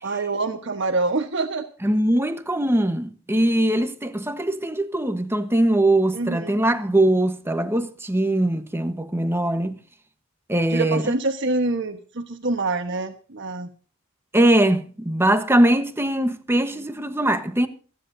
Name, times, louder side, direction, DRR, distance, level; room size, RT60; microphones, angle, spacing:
voice 1, 0.0-1.6 6.1-6.6 10.7-13.7, right 3 dB, 60° right, 1.3 m, -26 dB
voice 2, 1.8-9.8 10.5-11.1 14.3-17.7, right 1 dB, 10° right, 1.2 m, -21 dB
27.5 x 10.5 x 2.7 m
head